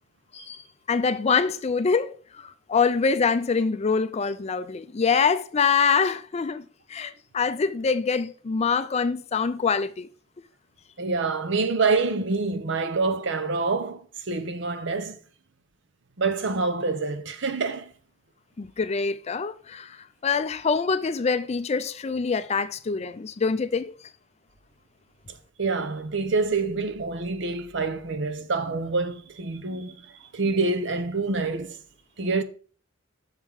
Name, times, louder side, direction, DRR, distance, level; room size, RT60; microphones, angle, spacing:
voice 1, 0.9-6.6 6.9-10.1 18.6-20.0 20.2-23.9, left 5 dB, 35° left, 0.4 m, -25 dB
voice 2, 11.0-15.2 16.2-17.9 25.6-31.8 32.2-32.4, right 3 dB, 65° right, 0.8 m, -26 dB
6.5 x 5.6 x 4.8 m
head